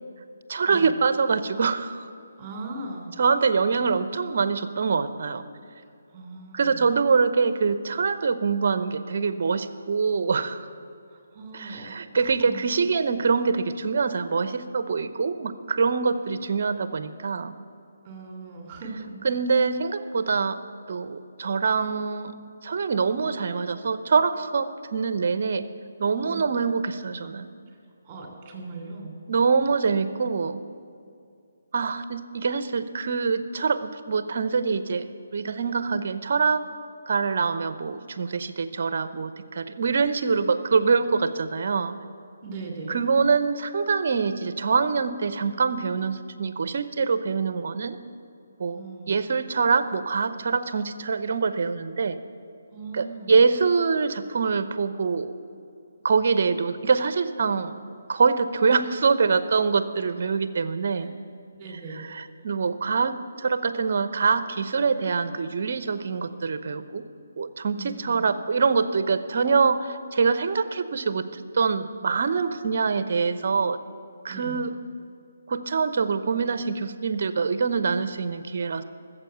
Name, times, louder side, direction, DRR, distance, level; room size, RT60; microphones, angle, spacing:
voice 1, 0.5-2.1 3.2-5.4 6.5-10.7 11.5-17.5 19.2-20.6 20.9-22.3 22.6-25.7 26.0-27.5 29.3-30.6 31.7-35.1 35.3-36.6 37.1-41.9 42.9-48.0 48.6-48.8 49.1-52.2 52.9-55.3 56.0-57.7 58.1-61.1 61.9-67.0 67.4-73.8 74.2-74.7 75.5-78.8, right 5 dB, 55° right, 12 dB, 0.8 m, -24 dB
voice 2, 2.4-3.2 6.1-6.9 11.1-12.6 18.0-19.2 26.2-26.5 27.7-27.8 28.0-29.2 42.4-43.0 48.7-49.1 52.7-53.4 61.0-61.1 61.5-62.1 67.7-68.2 74.3-74.6, right 3 dB, 25° right, 1 dB, 3.1 m, -39 dB
14.5 x 7.4 x 7.9 m, 2.4 s
figure-of-eight pair, 150°, 0 cm